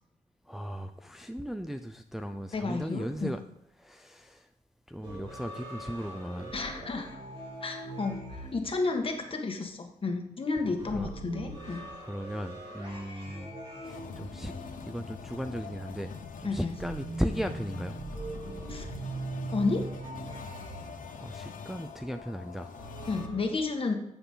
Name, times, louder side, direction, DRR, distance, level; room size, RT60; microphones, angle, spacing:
voice 1, 0.5-3.4 3.8-4.5 4.9-6.5 10.6-11.1 11.7-13.5 13.8-14.5 14.8-18.0 21.2-22.7, equal, ahead, 6 dB, 0.5 m, -37 dB
voice 2, 2.5-3.3 6.5-7.1 7.6-11.9 16.4-16.8 18.7-18.9 19.5-19.8 23.1-24.0, left 3 dB, 40° left, 3 dB, 1.6 m, -31 dB
sound 1, 5.0-9.6 10.8-15.6 16.8-21.4 22.8-23.4, right 2 dB, 40° right, 3.5 m, -41 dB
sound 2, 13.8-23.3, left 6 dB, 70° left, 1.1 m, -44 dB
10.0 x 7.2 x 3.8 m, 0.82 s
cardioid pair, 100°, 14 cm